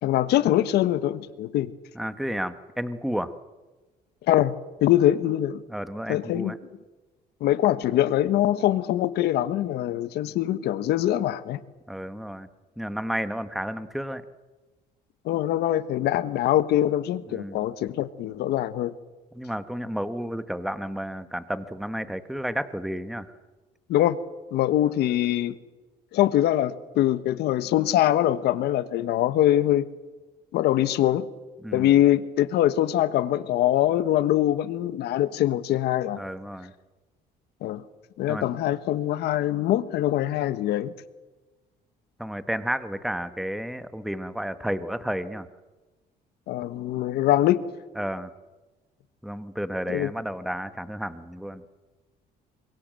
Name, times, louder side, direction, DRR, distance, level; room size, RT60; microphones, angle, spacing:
voice 1, 0.0-1.7 4.3-4.5 4.8-5.6 6.1-6.5 7.4-11.6 15.2-18.9 23.9-24.2 24.5-25.5 26.1-29.9 30.5-31.3 31.7-36.2 37.6-37.8 38.2-40.9 46.5-47.6 49.9-50.1, left 13 dB, 75° left, 13 dB, 1.3 m, -23 dB
voice 2, 1.9-3.3 5.7-6.6 11.9-12.5 12.8-14.2 17.3-17.7 19.3-23.3 31.6-32.0 36.2-36.7 38.3-38.5 42.2-45.5 48.0-48.3 49.2-51.6, equal, ahead, 11 dB, 1.3 m, -32 dB
26.5 x 22.5 x 7.7 m, 1.2 s
cardioid pair, 110°, 17 cm